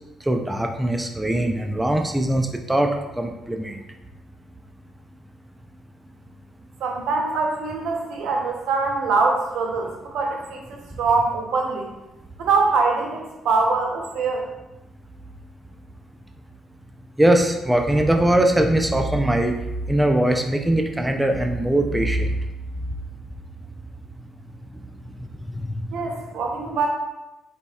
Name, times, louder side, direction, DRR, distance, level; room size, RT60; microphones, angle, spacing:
voice 1, 0.3-3.8 17.2-19.5 19.9-22.3 25.5-25.7, right 1 dB, 10° right, 4 dB, 0.4 m, -21 dB
voice 2, 6.8-11.9 12.4-14.4 25.9-26.9, right 4 dB, 85° right, 1 dB, 0.7 m, -23 dB
4.1 x 4.1 x 2.3 m, 0.98 s
cardioid pair, 90°, 0 cm